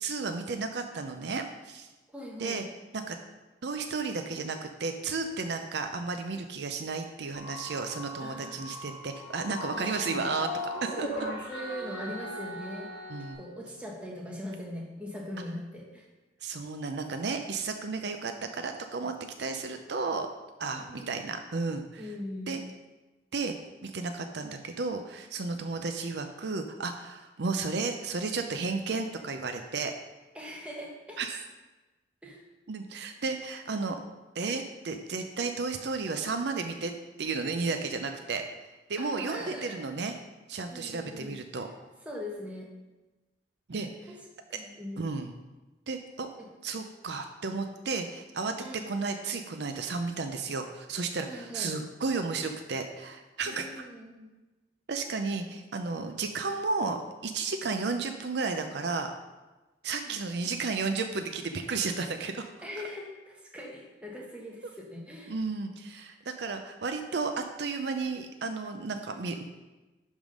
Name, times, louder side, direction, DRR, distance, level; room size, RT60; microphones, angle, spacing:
voice 1, 0.0-1.9 2.4-2.6 2.9-3.2 3.6-11.1 13.1-13.4 16.4-20.3 20.6-22.0 22.5-22.6 23.3-23.5 23.8-29.9 31.2-31.4 32.7-34.0 34.4-36.9 37.2-38.4 38.9-40.1 40.5-41.7 43.7-44.1 44.5-44.6 45.0-45.3 45.9-46.3 46.6-48.5 48.9-53.9 54.9-59.1 59.8-62.5 65.3-69.4, right 4 dB, 60° right, 6 dB, 0.5 m, -33 dB
voice 2, 2.1-2.6 8.2-8.7 9.7-10.2 10.7-12.9 13.2-16.1 20.6-21.2 22.0-22.6 30.3-31.2 32.2-32.4 39.0-39.8 40.7-41.4 42.0-42.7 43.8-44.2 44.5-45.1 46.4-46.5 48.6-48.9 51.2-51.8 53.4-54.3 60.0-60.2 62.6-65.3, left 1 dB, 5° right, -2 dB, 1.2 m, -41 dB
sound 1, 7.3-13.3, left 1 dB, 65° left, 3.0 m, -39 dB
11.0 x 3.7 x 5.1 m, 1.1 s
head